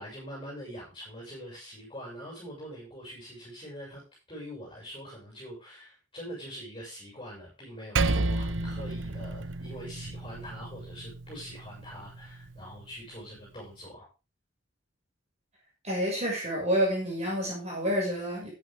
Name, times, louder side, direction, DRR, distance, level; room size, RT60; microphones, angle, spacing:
voice 1, 0.0-4.0 4.3-14.1, equal, 25° left, -5 dB, 7.0 m, -44 dB
Percussion, 8.0-12.7, right 2 dB, 70° right, 0.8 m, -32 dB
voice 2, 15.8-18.5, equal, 35° right, -3 dB, 6.2 m, -28 dB
14.0 x 9.2 x 3.7 m, 0.30 s
head